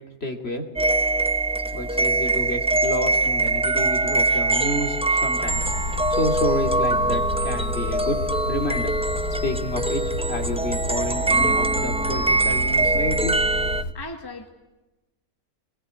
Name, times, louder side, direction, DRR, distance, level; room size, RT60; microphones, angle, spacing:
voice 1, 0.2-0.6 1.7-8.2 8.5-8.9 9.4-10.0 10.3-13.4, left 1 dB, 40° left, 4 dB, 2.7 m, -29 dB
sound 1, 0.8-13.8, right 2 dB, 10° right, 0.3 m, -23 dB
sound 2, 5.5-13.9, left 1 dB, 60° left, 1.7 m, -31 dB
voice 2, 13.9-14.5, left 2 dB, 15° left, 5 dB, 1.7 m, -37 dB
22.0 x 20.0 x 9.7 m, 1.1 s
omnidirectional pair, 1.7 m